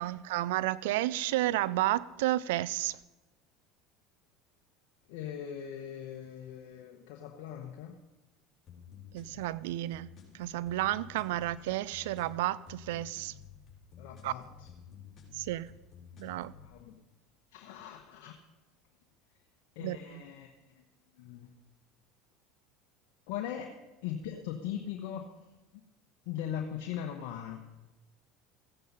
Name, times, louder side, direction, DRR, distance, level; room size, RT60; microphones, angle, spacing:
voice 1, 0.0-3.0 9.1-10.1 10.3-13.3 14.2-14.3 15.3-15.7 16.2-16.5 19.8-20.2, right 15 dB, 80° right, 0.4 m, -31 dB
voice 2, 5.1-8.0 14.0-14.7 16.6-17.0 17.5-18.3 19.8-20.5 21.2-21.5 23.3-23.7 24.0-25.3 26.3-27.6, left 9 dB, 70° left, 1.1 m, -40 dB
sound 1, 8.7-16.7, left 8 dB, 35° left, 4.8 m, -52 dB
15.0 x 9.3 x 5.6 m
hypercardioid pair, 90°, 0 cm